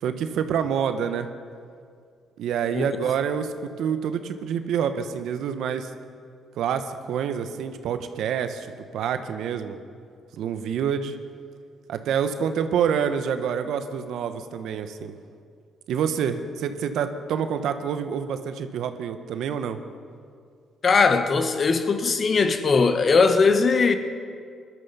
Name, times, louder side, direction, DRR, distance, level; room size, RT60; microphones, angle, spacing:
voice 1, 0.0-1.3 2.4-5.9 6.6-9.8 10.4-11.2 11.9-15.1 15.9-19.8, right 7 dB, 80° right, 1.0 m, -27 dB
voice 2, 20.8-24.0, left 4 dB, 45° left, 1.3 m, -19 dB
20.0 x 12.5 x 5.6 m
cardioid pair, 90°, 0 cm